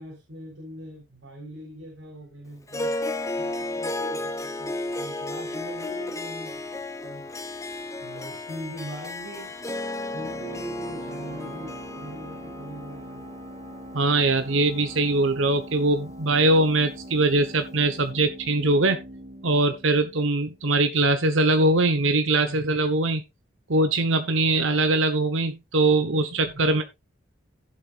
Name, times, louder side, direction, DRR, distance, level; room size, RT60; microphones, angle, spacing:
voice 1, 0.0-6.5 7.0-7.3 8.0-9.5 10.1-13.2 22.2-22.6 26.5-26.8, right 1 dB, 70° right, -2 dB, 4.4 m, -41 dB
Harp, 2.7-15.2, left 2 dB, 15° left, 0.9 m, -34 dB
sound 1, 9.7-21.1, right 1 dB, 30° right, 1.5 m, -42 dB
voice 2, 13.9-19.0 19.4-23.2 23.7-26.8, right 2 dB, 85° right, 8 dB, 1.1 m, -22 dB
15.5 x 7.8 x 2.5 m, 0.23 s
head